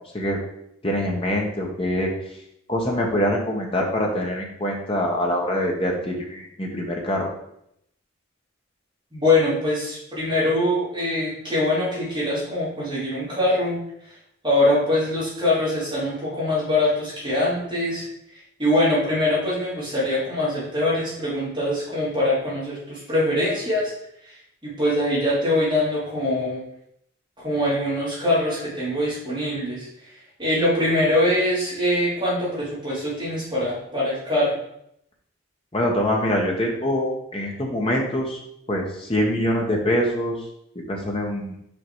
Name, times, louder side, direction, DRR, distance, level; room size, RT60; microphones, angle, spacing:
voice 1, 0.8-2.1 2.7-7.3 35.7-38.4 38.7-40.4 40.9-41.5, equal, 30° left, 0 dB, 1.2 m, -24 dB
voice 2, 9.1-13.8 14.4-18.0 18.6-23.9 24.2-24.3 24.6-26.6 27.4-29.9 30.4-34.6, left 1 dB, 25° right, -9 dB, 2.8 m, -23 dB
5.4 x 4.8 x 4.7 m, 0.75 s
head